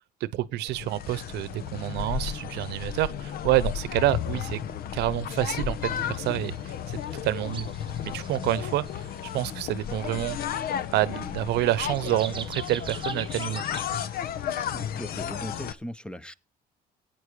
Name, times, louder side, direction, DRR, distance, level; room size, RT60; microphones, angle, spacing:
voice 1, 0.2-4.6 4.9-7.7 8.0-9.1 9.3-10.4 10.9-13.7, right 15 dB, 85° right, 0.9 m, -28 dB
sound 1, 0.7-15.7, left 9 dB, 65° left, 0.9 m, -33 dB
sound 2, 5.8-6.1 6.3-6.7 7.0-9.3 9.7-10.8 11.6-14.3, right 6 dB, 30° right, 0.7 m, -43 dB
voice 2, 14.7-16.3, left 1 dB, 5° left, 0.8 m, -38 dB
16.0 x 9.3 x 4.9 m
cardioid pair, 110°, 17 cm